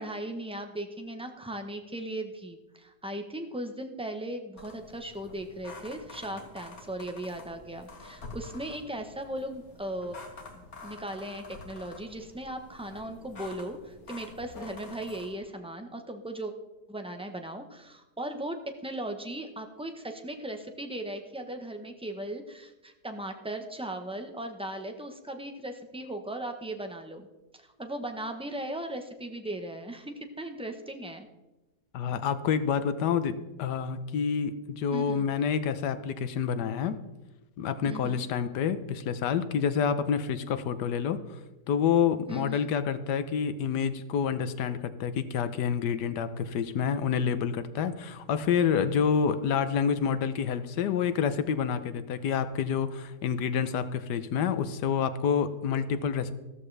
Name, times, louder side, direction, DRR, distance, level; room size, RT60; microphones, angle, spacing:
voice 1, 0.0-10.2 10.5-16.5 16.9-27.3 27.5-31.3 34.9-35.2 37.9-38.2 42.3-42.7, right 1 dB, 5° right, 5 dB, 0.5 m, -38 dB
sound 1, 4.6-15.4, left 3 dB, 60° left, 2.1 m, -47 dB
voice 2, 31.9-37.0 37.6-41.2 41.7-56.3, left 7 dB, 85° left, 12 dB, 1.4 m, -28 dB
14.0 x 13.0 x 3.3 m, 1.1 s
omnidirectional pair, 1.8 m